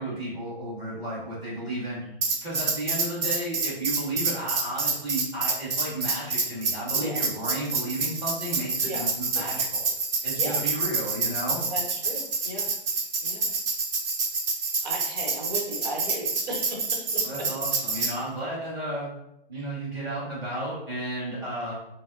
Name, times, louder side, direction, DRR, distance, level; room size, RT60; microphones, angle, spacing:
voice 1, 0.0-2.0 2.4-9.9 10.2-11.7 17.2-19.1 19.5-21.7, right 1 dB, 10° right, -9 dB, 1.4 m, -33 dB
Tambourine, 2.2-18.1, right 4 dB, 65° right, 0.8 m, -27 dB
voice 2, 11.7-12.7 13.2-13.5 14.8-17.0 19.5-19.6, right 1 dB, 45° right, -1 dB, 1.1 m, -36 dB
5.2 x 2.0 x 2.5 m, 0.81 s
hypercardioid pair, 150°, 30 cm